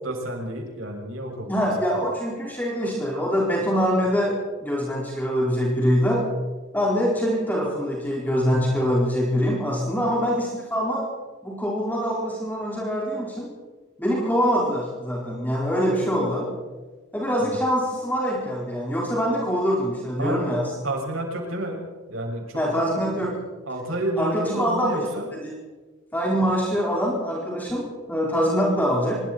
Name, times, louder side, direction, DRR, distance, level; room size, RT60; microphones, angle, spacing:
voice 1, 0.0-1.6 17.4-17.6 20.2-20.4 20.8-21.8 22.1-22.6 23.7-25.3, right 1 dB, 90° right, 0 dB, 6.9 m, -30 dB
voice 2, 1.5-4.3 4.6-6.2 6.7-11.0 11.4-13.5 14.0-16.5 17.1-20.7 22.5-23.3 24.2-25.0 25.3-25.5 26.1-29.1, equal, 10° left, -4 dB, 4.6 m, -24 dB
25.5 x 24.0 x 4.5 m, 1.3 s
head